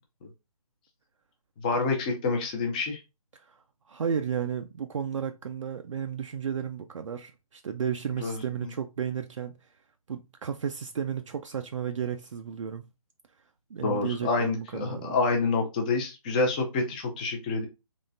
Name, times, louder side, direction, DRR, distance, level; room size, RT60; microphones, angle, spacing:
voice 1, 1.6-3.0 8.2-8.4 13.8-17.7, left 3 dB, 15° left, 0.5 m, -27 dB
voice 2, 3.3-9.6 10.1-12.9 13.7-15.2, right 7 dB, 55° right, 0.4 m, -33 dB
3.7 x 3.2 x 2.5 m
figure-of-eight pair, 155°, 20 cm